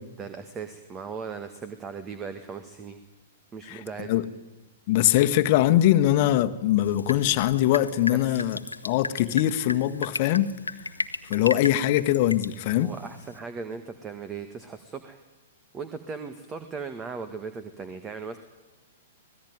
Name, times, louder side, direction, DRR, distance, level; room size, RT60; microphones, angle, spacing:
voice 1, 0.2-3.0 3.5-4.1 8.1-8.5 12.7-15.2 15.7-18.4, right 5 dB, 20° right, 9 dB, 1.8 m, -38 dB
voice 2, 3.7-4.2 4.9-8.6 8.8-10.5 11.3-12.9, left 13 dB, 45° left, 9 dB, 1.5 m, -22 dB
Drip, 6.8-13.4, left 2 dB, 90° left, 1.2 m, -36 dB
26.0 x 19.0 x 9.5 m, 1.1 s
figure-of-eight pair, 105°, 0 cm